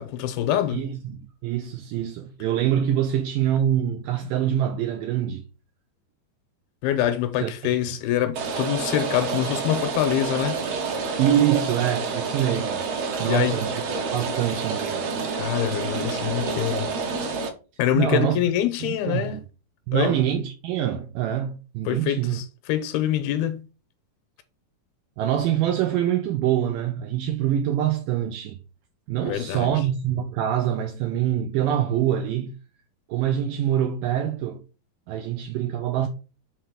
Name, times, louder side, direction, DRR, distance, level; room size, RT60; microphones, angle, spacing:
voice 1, 0.0-0.9 6.8-10.6 13.2-13.6 15.3-16.9 17.8-19.4 19.9-20.2 21.9-23.6 29.2-29.8, left 11 dB, 85° left, 2.7 m, -25 dB
voice 2, 0.7-5.4 7.4-7.8 11.2-12.8 13.2-13.8 14.1-15.1 18.0-18.4 18.8-19.4 19.9-22.4 25.2-28.6 29.1-32.5 33.1-34.6 35.1-36.1, right 10 dB, 85° right, 2.0 m, -25 dB
Rain, 8.4-17.5, right 4 dB, 65° right, 1.7 m, -28 dB
6.1 x 4.3 x 5.0 m
omnidirectional pair, 4.5 m